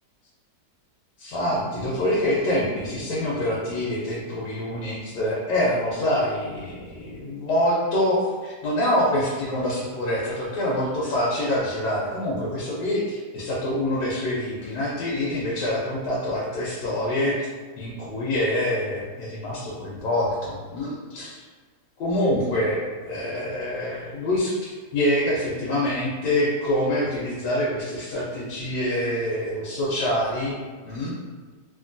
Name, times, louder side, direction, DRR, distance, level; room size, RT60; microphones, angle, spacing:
voice 1, 1.2-17.4 17.8-21.4 22.0-30.5 30.8-31.1, left 1 dB, 85° left, -6 dB, 1.2 m, -25 dB
2.8 x 2.5 x 2.5 m, 1.4 s
omnidirectional pair, 1.7 m